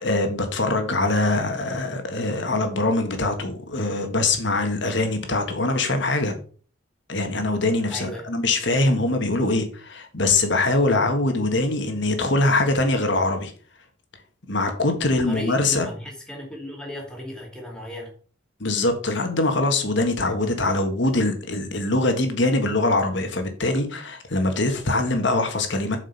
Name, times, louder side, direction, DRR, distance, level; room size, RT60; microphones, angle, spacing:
voice 1, 0.0-6.4 7.1-13.5 14.5-15.9 18.6-26.0, left 2 dB, 60° left, 6 dB, 1.6 m, -23 dB
voice 2, 7.9-8.3 15.3-18.1, left 1 dB, 5° left, -1 dB, 2.5 m, -35 dB
7.7 x 5.3 x 5.5 m, 0.42 s
head